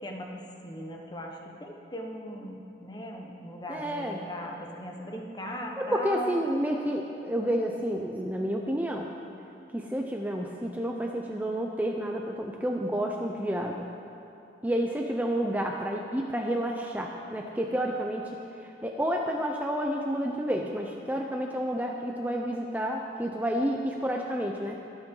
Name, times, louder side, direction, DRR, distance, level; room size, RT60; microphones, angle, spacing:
voice 1, 0.0-6.4, equal, 25° left, 1 dB, 1.2 m, -39 dB
voice 2, 3.7-4.3 5.8-9.1 9.7-13.9 14.6-18.3 18.6-24.8, equal, 10° right, 1 dB, 0.6 m, -30 dB
23.0 x 8.9 x 3.9 m, 2.8 s
head